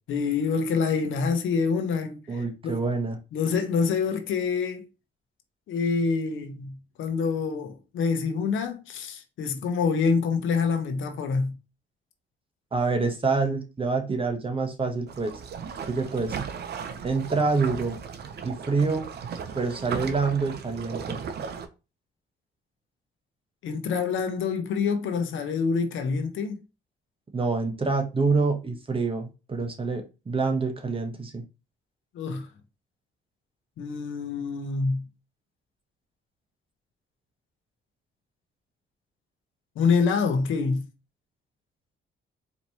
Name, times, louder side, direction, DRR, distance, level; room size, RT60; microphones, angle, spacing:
voice 1, 0.1-2.8 3.3-4.9 5.7-11.6 23.6-26.6 32.1-32.5 33.8-35.1 39.8-40.9, left 5 dB, 75° left, 0.8 m, -26 dB
voice 2, 2.3-3.2 12.7-15.4 15.9-16.4 17.0-18.0 18.4-19.1 19.5-21.2 27.3-31.4, right 4 dB, 25° right, 1.0 m, -26 dB
sound 1, 15.1-21.7, right 7 dB, 55° right, 0.6 m, -36 dB
4.4 x 3.0 x 2.8 m
cardioid pair, 90°, 20 cm